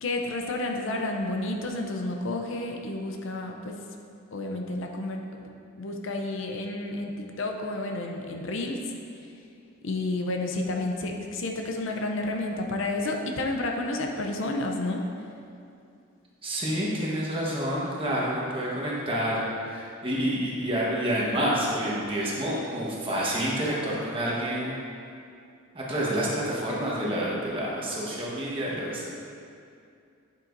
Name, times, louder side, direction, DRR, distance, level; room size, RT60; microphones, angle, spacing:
voice 1, 0.0-3.7 4.3-5.5 5.8-8.8 9.8-15.0, left 2 dB, 60° left, 2 dB, 0.6 m, -30 dB
voice 2, 16.4-24.8 25.7-29.1, equal, 25° right, -5 dB, 1.2 m, -28 dB
8.6 x 7.5 x 2.6 m, 2.5 s
head